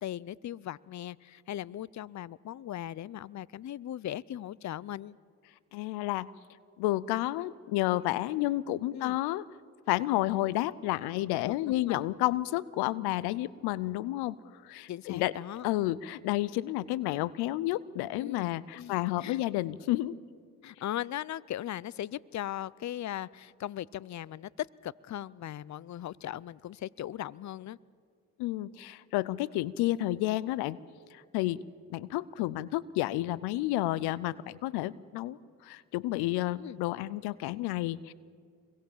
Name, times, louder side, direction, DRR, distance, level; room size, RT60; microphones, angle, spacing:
voice 1, 0.0-5.2 8.9-9.2 11.4-12.0 14.9-15.6 18.2-19.4 20.6-27.8 36.6-36.8, left 12 dB, 50° left, 23 dB, 0.6 m, -38 dB
voice 2, 5.7-6.3 6.8-9.4 9.9-14.4 14.6-15.3 15.6-20.1 28.4-30.8 31.1-31.6 31.9-38.1, left 16 dB, 90° left, 21 dB, 0.6 m, -31 dB
27.0 x 22.0 x 7.3 m, 2.1 s
supercardioid pair, 55°, 38 cm